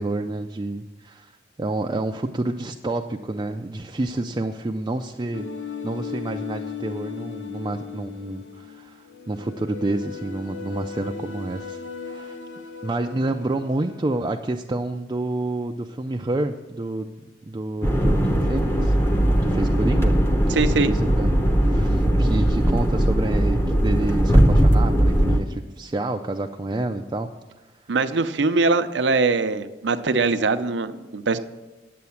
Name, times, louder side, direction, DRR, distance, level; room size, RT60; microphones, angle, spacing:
voice 1, 0.0-5.5 5.8-12.4 12.8-17.2 17.5-18.9 19.4-20.2 20.5-20.6 20.9-21.3 21.6-27.3, right 2 dB, 25° right, 3 dB, 0.4 m, -29 dB
sound 1, 5.3-14.3, left 6 dB, 85° left, 1.0 m, -37 dB
sound 2, 17.8-25.4, right 1 dB, 15° left, 0.9 m, -19 dB
voice 2, 20.6-20.9 27.9-31.4, right 3 dB, 75° right, 10 dB, 0.7 m, -22 dB
9.5 x 7.7 x 7.1 m, 1.1 s
head